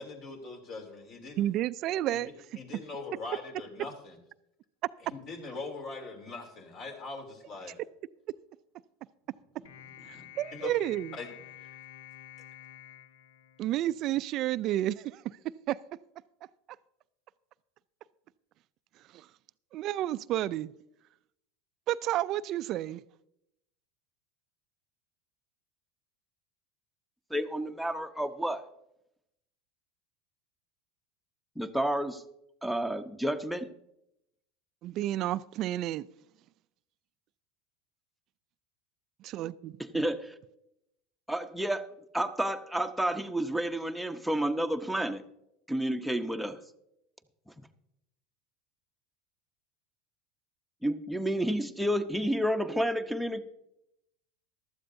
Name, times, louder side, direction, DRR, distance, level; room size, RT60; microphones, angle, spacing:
voice 1, 0.0-1.5 2.1-2.2 2.5-4.2 5.0-7.8 9.6-9.7 10.0-10.7 11.1-11.3 11.6-11.7, left 3 dB, 50° left, 3 dB, 3.1 m, -42 dB
voice 2, 1.4-2.3 10.1-11.2 13.6-15.4 15.7-15.8 19.1-19.3 19.7-20.7 21.9-23.0 34.8-36.1 39.2-39.8, right 13 dB, 50° right, 17 dB, 0.4 m, -31 dB
sound 1, 9.6-14.1, left 12 dB, 80° left, 0.7 m, -50 dB
voice 3, 27.3-28.6 31.6-32.2 32.6-33.7 39.8-40.3 41.3-45.2 45.7-46.6 50.8-53.4, right 1 dB, ahead, 5 dB, 0.8 m, -30 dB
15.0 x 12.5 x 2.7 m, 0.82 s
hypercardioid pair, 95°, 0 cm